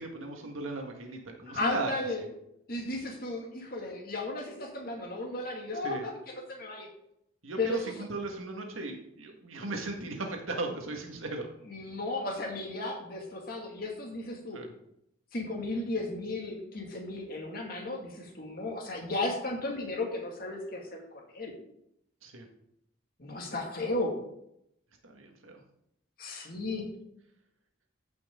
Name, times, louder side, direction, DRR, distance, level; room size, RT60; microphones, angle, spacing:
voice 1, 0.0-1.9 5.8-6.0 7.4-11.5 14.5-14.7 22.2-22.5 25.0-25.6, right 3 dB, 85° right, 2 dB, 1.8 m, -37 dB
voice 2, 1.5-2.2 2.7-6.9 7.6-7.8 11.7-14.6 15.3-21.5 23.2-24.1 26.2-26.9, left 2 dB, 45° left, 0 dB, 2.2 m, -35 dB
14.5 x 6.0 x 3.8 m, 0.78 s
head